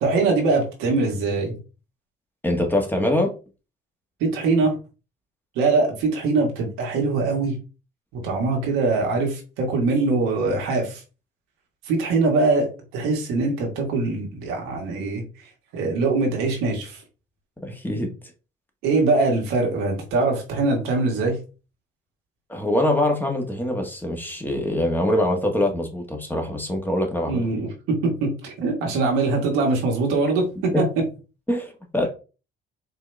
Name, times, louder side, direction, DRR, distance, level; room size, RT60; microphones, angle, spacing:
voice 1, 0.0-1.6 4.2-4.7 5.5-7.6 8.1-11.0 11.8-15.2 15.7-17.0 18.8-21.4 27.3-30.7, right 3 dB, 90° right, 0 dB, 1.5 m, -22 dB
voice 2, 2.4-3.3 17.6-18.1 22.5-27.5 30.7-30.8 31.5-32.1, left 1 dB, 10° left, 3 dB, 1.4 m, -23 dB
4.6 x 2.9 x 3.3 m, 0.33 s
supercardioid pair, 70°, 21 cm